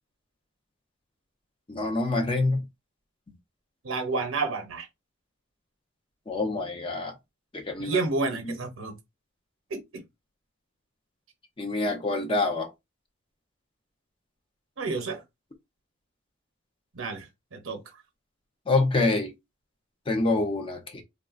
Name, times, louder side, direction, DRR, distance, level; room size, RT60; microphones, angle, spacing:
voice 1, 1.7-2.6 6.3-7.1 7.5-8.0 8.5-8.6 11.6-12.7 18.7-19.3 20.1-21.0, left 2 dB, 25° left, 0.6 m, -26 dB
voice 2, 3.8-4.9 7.8-8.9 9.7-10.0 14.8-15.2 16.9-17.8, right 3 dB, 80° right, 0.8 m, -30 dB
3.6 x 2.1 x 2.4 m
head